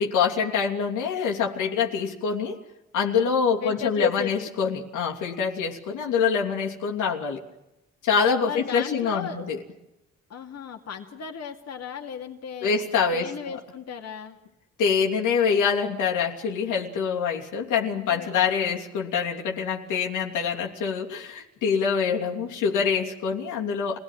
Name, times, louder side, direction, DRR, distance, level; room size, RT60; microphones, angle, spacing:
voice 1, 0.0-2.6 2.9-7.4 8.0-9.6 12.6-13.6 14.8-24.0, left 6 dB, 85° left, 0 dB, 3.0 m, -25 dB
voice 2, 3.6-4.5 8.4-9.4 10.3-12.8 13.1-14.4 17.9-18.8, left 6 dB, 60° left, 3 dB, 2.5 m, -34 dB
25.5 x 18.0 x 9.3 m, 0.92 s
cardioid pair, 90°, 30 cm